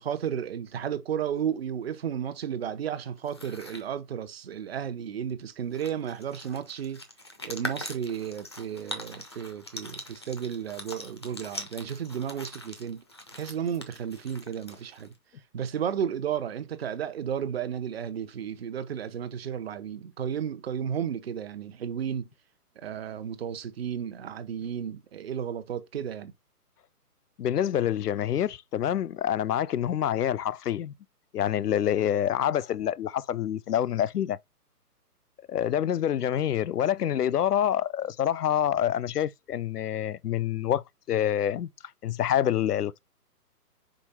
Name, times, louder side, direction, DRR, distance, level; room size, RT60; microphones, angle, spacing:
voice 1, 0.0-7.0 7.4-13.0 13.3-15.1 15.5-22.3 22.8-26.3, right 8 dB, 40° right, 0.9 m, -33 dB
sound 1, 3.2-3.9 5.3-5.4 5.6-15.2, left 1 dB, 20° left, 0.5 m, -42 dB
voice 2, 27.4-30.9 31.3-34.4 35.5-41.7 42.0-43.0, left 10 dB, 75° left, 0.6 m, -27 dB
5.2 x 4.9 x 4.1 m
hypercardioid pair, 145°, 47 cm